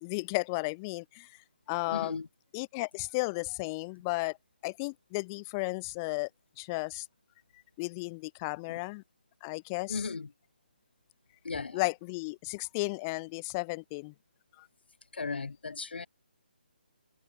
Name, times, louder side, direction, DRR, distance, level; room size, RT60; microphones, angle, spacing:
voice 1, 0.0-1.3 1.7-2.2 2.5-4.4 4.6-6.3 6.6-7.1 7.8-9.0 9.4-10.0 11.7-14.1 14.6-14.7, left 27 dB, 20° left, 0.7 m, -34 dB
voice 2, 1.9-2.3 8.7-8.8 9.9-10.3 11.4-11.8 15.1-16.1, left 4 dB, 75° left, 1.8 m, -36 dB
hypercardioid pair, 165°, 6 cm